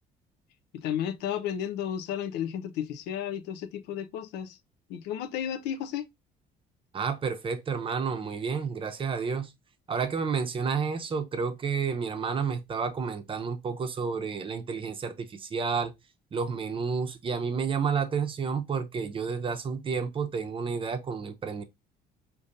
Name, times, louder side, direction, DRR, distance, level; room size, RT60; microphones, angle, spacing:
voice 1, 0.7-4.6 4.9-6.1, left 9 dB, 85° left, 0.5 m, -33 dB
voice 2, 6.9-9.5 9.9-15.9 16.3-21.6, right 5 dB, 30° right, 0.6 m, -30 dB
5.0 x 2.6 x 2.6 m
cardioid pair, 110°, 17 cm